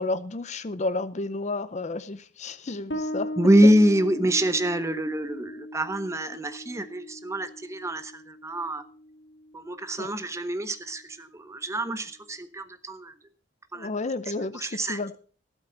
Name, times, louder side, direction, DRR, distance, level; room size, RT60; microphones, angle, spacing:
voice 1, 0.0-3.3 10.0-10.1 13.7-15.2, left 3 dB, 40° left, 0.6 m, -31 dB
Bass guitar, 2.9-10.1, left 1 dB, 65° left, 2.1 m, -38 dB
voice 2, 3.4-8.8 9.5-13.1 13.7-13.9 14.5-15.0, right 1 dB, 15° right, 0.8 m, -25 dB
13.0 x 12.0 x 3.9 m
head